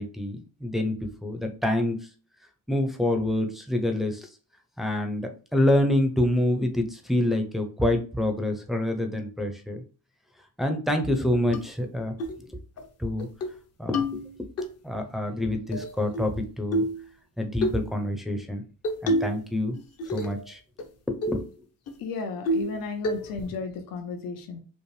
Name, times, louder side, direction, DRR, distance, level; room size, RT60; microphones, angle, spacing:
voice 1, 0.0-2.1 2.7-4.3 4.8-9.8 10.6-12.1 12.4-12.6 13.0-13.3 13.8-14.5 14.8-16.9 17.4-18.6 19.0-19.8 20.1-20.6 21.1-21.4 23.5-23.6, left 1 dB, ahead, 4 dB, 0.4 m, -27 dB
sound 1, 11.5-11.6 12.2-12.4 12.8-12.9 13.2-13.6 13.9-14.7 15.7-16.3 16.7-17.0 17.6-17.8 18.8-19.4 19.7-20.4 20.8-20.9 21.2-21.4 21.9-22.0 22.5-22.8 23.0-23.5, equal, 50° left, 0.7 m, -28 dB
voice 2, 22.0-24.6, left 4 dB, 80° left, 5 dB, 0.7 m, -34 dB
5.3 x 2.1 x 3.1 m, 0.38 s
cardioid pair, 150°, 33 cm